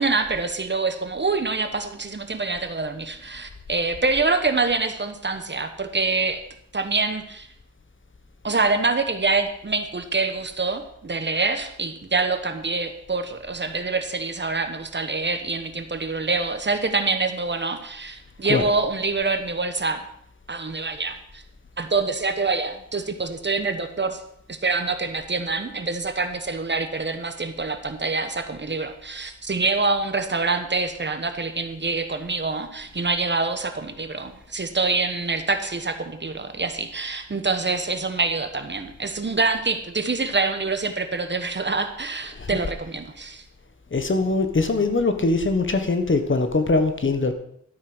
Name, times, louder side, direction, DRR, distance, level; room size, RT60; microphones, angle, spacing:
voice 1, 0.0-6.4 6.7-7.5 8.4-20.0 20.5-21.4 21.8-24.2 24.5-43.4, right 3 dB, 40° right, 8 dB, 1.2 m, -25 dB
voice 2, 43.9-47.3, left 3 dB, 40° left, 8 dB, 1.4 m, -22 dB
12.5 x 8.5 x 6.2 m, 0.70 s
wide cardioid pair, 110°, 29 cm